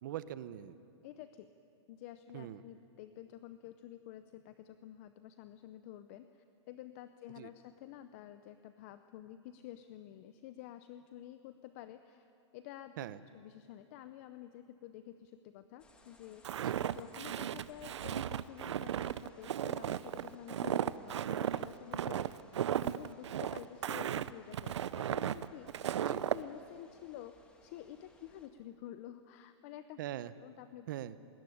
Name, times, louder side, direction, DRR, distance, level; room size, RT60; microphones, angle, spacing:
voice 1, 0.0-0.8 2.3-2.6 7.4-7.5 13.0-13.2 16.6-16.8 26.1-26.2 30.0-30.3 30.9-31.2, right 12 dB, 45° right, 15 dB, 0.8 m, -42 dB
voice 2, 1.0-1.5 1.9-12.3 12.5-12.9 13.3-16.6 16.9-22.4 22.8-30.0 30.4-30.9, left 12 dB, 30° left, 11 dB, 0.6 m, -50 dB
sound 1, 15.8-28.5, left 2 dB, 5° left, 1.5 m, -64 dB
Walk footsteps, 16.4-26.4, right 10 dB, 70° right, 0.7 m, -35 dB
19.5 x 19.0 x 10.0 m, 2.9 s
hypercardioid pair, 165°, 15 cm